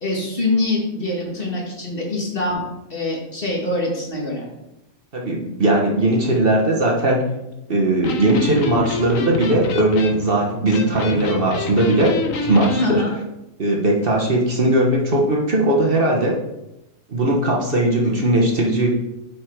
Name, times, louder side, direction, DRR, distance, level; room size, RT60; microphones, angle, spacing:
voice 1, 0.0-2.6 2.9-4.4 12.8-13.1, left 2 dB, 45° left, -3 dB, 2.0 m, -24 dB
voice 2, 5.1-7.3 7.7-13.0 13.6-16.4 17.1-19.0, right 1 dB, 45° right, -1 dB, 1.3 m, -19 dB
Electric guitar, 7.9-12.9, left 3 dB, 90° left, 1.3 m, -27 dB
7.9 x 5.0 x 4.6 m, 0.93 s
omnidirectional pair, 1.3 m